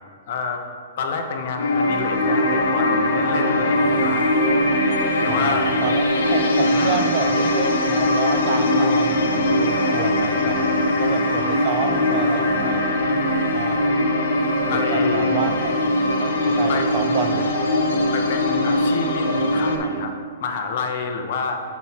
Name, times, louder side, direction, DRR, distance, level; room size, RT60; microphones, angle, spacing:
voice 1, 0.3-0.6 1.0-4.3 5.2-5.7 6.7-7.1 14.7-15.5 16.7-16.9 18.1-20.1 20.4-21.6, left 5 dB, 45° left, 5 dB, 0.7 m, -28 dB
sound 1, 1.6-19.8, left 1 dB, 90° left, 1.0 m, -21 dB
voice 2, 5.3-12.8 13.5-14.0 14.7-15.6 16.2-17.5, right 6 dB, 30° right, 6 dB, 0.4 m, -30 dB
6.1 x 4.2 x 5.8 m, 2.1 s
hypercardioid pair, 170°, 0 cm